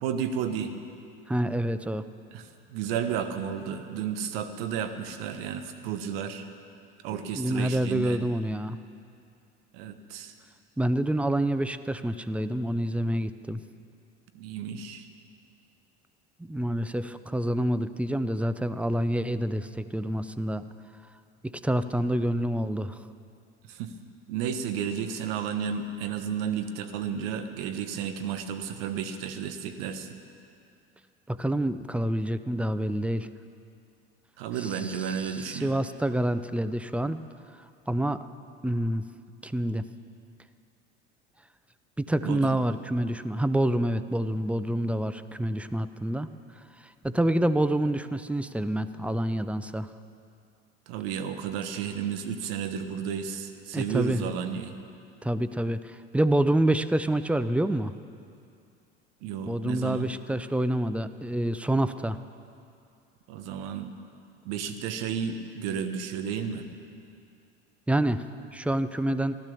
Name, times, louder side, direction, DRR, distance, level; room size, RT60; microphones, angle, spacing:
voice 1, 0.0-0.7 2.3-6.5 7.0-8.2 9.7-10.3 14.3-15.1 23.7-23.9 24.3-30.1 34.4-35.7 42.2-42.6 50.9-54.7 59.2-60.1 63.3-63.9 64.4-66.7, right 7 dB, 65° right, 8 dB, 1.3 m, -32 dB
voice 2, 1.3-2.1 7.1-8.8 10.8-13.6 16.4-20.6 21.4-23.0 31.3-33.3 34.6-37.2 37.9-38.2 38.6-39.0 39.4-39.8 42.0-46.3 47.0-49.9 53.7-54.2 55.2-57.9 59.5-62.2 67.9-68.2 68.5-69.4, right 1 dB, 5° right, 12 dB, 0.5 m, -27 dB
15.0 x 12.0 x 7.0 m, 2.5 s
hypercardioid pair, 75°, 32 cm